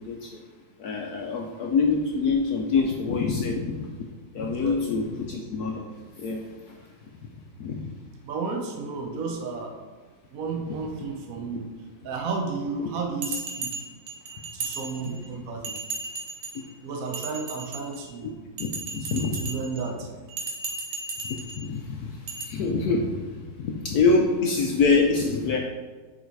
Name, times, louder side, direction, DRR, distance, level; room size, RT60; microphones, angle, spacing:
voice 1, 0.8-3.9 4.3-5.8 6.2-6.4 7.6-7.8 16.5-16.6 18.6-19.4 21.2-25.6, left 4 dB, 75° left, 1 dB, 0.9 m, -25 dB
voice 2, 4.4-5.0 6.7-6.8 8.2-9.8 10.3-11.7 12.0-13.9 14.5-15.8 16.8-18.4 19.0-20.1, right 4 dB, 65° right, 2 dB, 0.9 m, -33 dB
Bell, 13.2-15.3 15.6-16.6 17.1-18.1 18.6-19.8 20.3-21.6 22.3-22.4, right 3 dB, 90° right, 1.9 m, -35 dB
7.2 x 3.9 x 4.7 m, 1.4 s
omnidirectional pair, 2.3 m